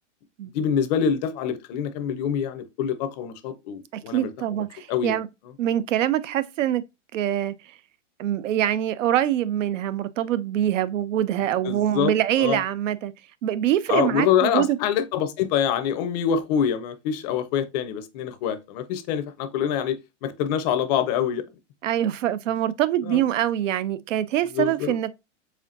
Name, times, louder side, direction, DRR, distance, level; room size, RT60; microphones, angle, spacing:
voice 1, 0.5-4.6 4.9-5.2 11.6-12.1 12.4-12.6 13.9-21.4 23.0-23.2 24.5-24.9, left 8 dB, 35° left, 0.5 m, -25 dB
voice 2, 3.9-5.3 5.6-6.8 7.1-7.5 8.2-13.1 13.4-14.8 21.8-25.1, right 11 dB, 85° right, 0.6 m, -24 dB
4.3 x 3.5 x 2.4 m
hypercardioid pair, 140°, 37 cm